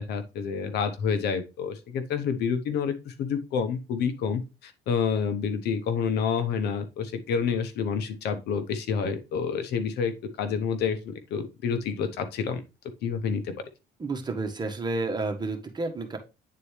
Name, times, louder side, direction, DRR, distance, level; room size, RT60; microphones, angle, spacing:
voice 1, 0.0-10.1 10.4-12.6 13.0-13.5, left 6 dB, 75° left, 10 dB, 1.1 m, -28 dB
voice 2, 14.0-16.2, right 3 dB, 25° right, 4 dB, 1.5 m, -30 dB
9.1 x 4.2 x 3.3 m, 0.27 s
cardioid pair, 110°, 17 cm